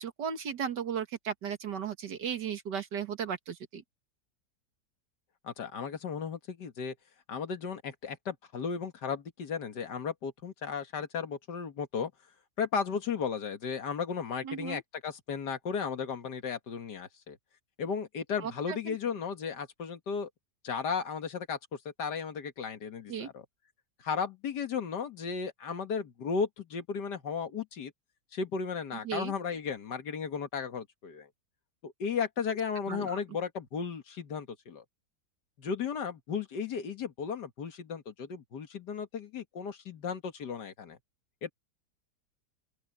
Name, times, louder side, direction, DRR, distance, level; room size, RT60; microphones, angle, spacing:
voice 1, 0.0-3.8 14.4-14.8 18.4-19.0 23.1-23.3 29.0-29.3 32.9-33.2, right 7 dB, 90° right, 2.2 m, -35 dB
voice 2, 5.4-6.9 7.3-12.1 12.6-17.4 17.8-20.3 20.6-21.6 22.0-23.5 24.0-27.9 28.3-31.3 31.8-34.8 35.6-41.0 41.4-41.5, left 6 dB, 80° left, 2.2 m, -35 dB
open air
omnidirectional pair, 1.8 m